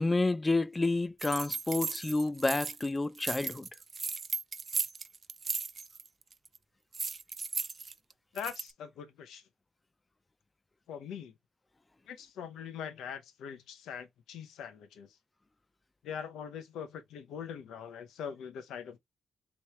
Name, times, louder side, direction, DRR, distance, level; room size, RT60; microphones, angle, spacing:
voice 1, 0.0-3.7, left 2 dB, 25° left, 0.4 m, -29 dB
sound 1, 1.2-2.9 3.2-6.1 6.3-6.6 6.9-8.7, right 5 dB, 45° right, 0.4 m, -36 dB
voice 2, 8.3-9.4 10.9-11.3 12.1-15.1 16.0-19.0, left 7 dB, 80° left, 0.7 m, -42 dB
3.1 x 3.1 x 2.9 m
hypercardioid pair, 45°, 0 cm